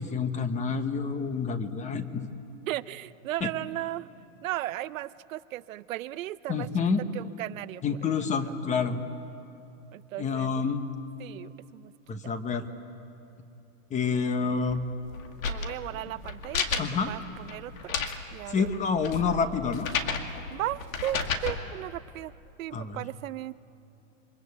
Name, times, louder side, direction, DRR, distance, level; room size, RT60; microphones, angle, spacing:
voice 1, 0.0-2.3 3.4-3.5 6.5-7.0 7.8-9.0 10.2-10.8 12.1-12.7 13.9-14.8 16.8-17.1 18.5-19.9 22.7-23.0, left 5 dB, 20° left, 10 dB, 1.1 m, -28 dB
voice 2, 2.7-4.1 4.4-6.7 7.1-7.8 8.4-8.5 9.9-10.5 11.2-11.9 15.5-18.0 18.3-18.7 20.5-22.3 22.6-23.5, right 15 dB, 80° right, 15 dB, 0.7 m, -36 dB
sound 1, 14.7-21.6, left 5 dB, 85° left, 2.2 m, -33 dB
28.5 x 23.0 x 8.3 m, 2.8 s
supercardioid pair, 150°, 39 cm